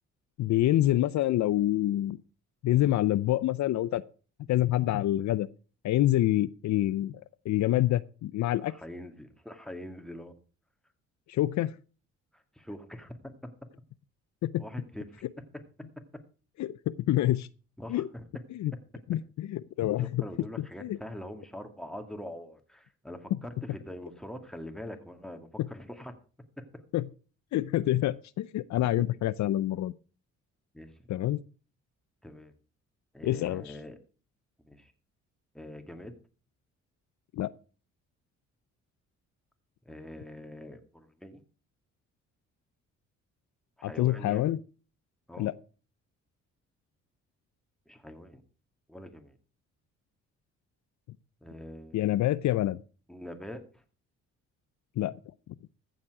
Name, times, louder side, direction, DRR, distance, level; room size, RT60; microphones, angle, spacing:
voice 1, 0.4-2.2 2.6-4.0 4.5-5.5 5.8-8.7 11.3-11.7 14.4-14.6 16.6-17.5 17.9-18.1 18.5-18.7 19.1-20.2 20.8-21.0 23.3-23.4 25.6-25.7 26.9-27.1 27.5-29.9 31.1-31.4 33.2-33.7 37.3-37.5 43.8-44.6 45.4-45.5 51.9-52.8 55.0-55.1, left 14 dB, 65° left, 16 dB, 0.5 m, -27 dB
voice 2, 8.5-10.3 12.3-13.2 14.6-15.2 17.8-18.2 20.0-26.2 26.6-26.7 30.7-31.0 32.2-32.5 33.1-34.0 34.6-34.9 35.5-36.1 39.9-41.4 43.8-44.5 45.3-45.5 47.9-48.4 48.9-49.4 51.4-52.0 53.1-53.8, left 1 dB, ahead, 6 dB, 2.1 m, -43 dB
14.5 x 7.4 x 4.8 m, 0.37 s
cardioid pair, 90°, 30 cm